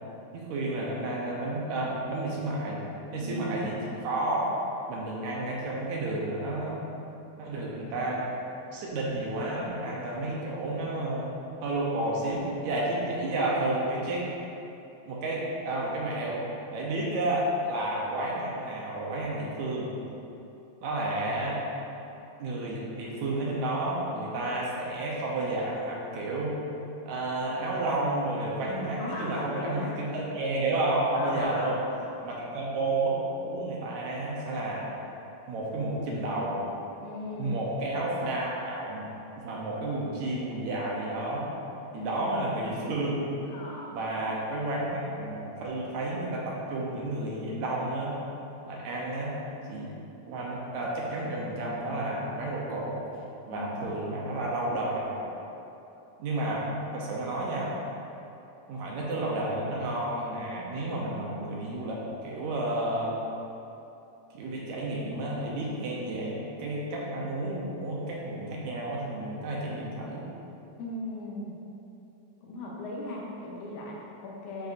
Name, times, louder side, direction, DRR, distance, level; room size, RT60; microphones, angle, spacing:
voice 1, 0.3-2.8 3.1-4.5 4.9-6.8 7.4-8.3 8.7-11.3 11.6-14.3 15.1-16.4 16.7-19.9 20.8-21.6 22.4-26.5 27.1-31.8 32.2-34.9 35.5-36.6 37.4-39.1 39.4-41.5 41.9-43.2 43.9-48.2 48.6-49.4 49.7-49.9 50.3-53.0 53.5-55.3 56.2-56.6 56.9-57.7 58.7-63.2 64.3-70.3, right 2 dB, 80° right, -4 dB, 2.2 m, -31 dB
voice 2, 3.2-3.6 28.7-30.0 31.1-31.8 37.0-37.6 41.9-42.5 43.5-44.0 53.5-54.0 70.8-71.6 72.4-74.7, left 1 dB, 85° left, -3 dB, 2.4 m, -38 dB
11.5 x 5.3 x 2.6 m, 2.9 s
omnidirectional pair, 3.3 m